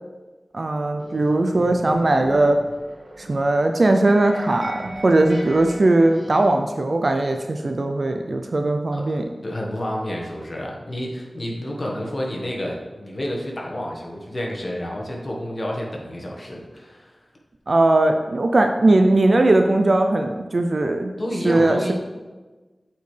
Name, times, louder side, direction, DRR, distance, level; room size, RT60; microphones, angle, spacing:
voice 1, 0.5-2.6 3.2-9.2 17.7-21.1 21.4-21.9, right 2 dB, 55° right, 5 dB, 0.4 m, -19 dB
sound 1, 1.0-6.5, right 1 dB, 85° right, 1.8 m, -39 dB
voice 2, 8.9-17.2 21.2-21.9, equal, 40° left, -1 dB, 1.3 m, -30 dB
8.0 x 4.4 x 3.3 m, 1.2 s
wide cardioid pair, 80°, 0 cm